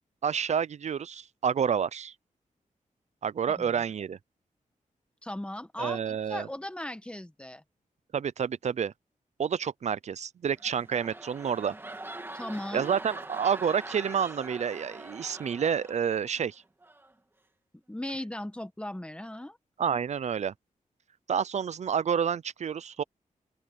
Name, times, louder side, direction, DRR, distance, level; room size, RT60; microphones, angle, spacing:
voice 1, 0.2-2.1 3.2-4.2 5.8-6.5 8.1-8.9 9.4-11.7 12.7-16.6 19.8-20.5 21.3-23.0, right 7 dB, 55° right, 0.5 m, -29 dB
voice 2, 5.2-6.0 6.3-7.6 12.3-12.9 17.9-19.6, left 1 dB, 10° left, 1.3 m, -37 dB
sound 1, 10.5-16.4 16.8-17.1, right 2 dB, 15° right, 1.9 m, -43 dB
open air
wide cardioid pair, 170°, 14 cm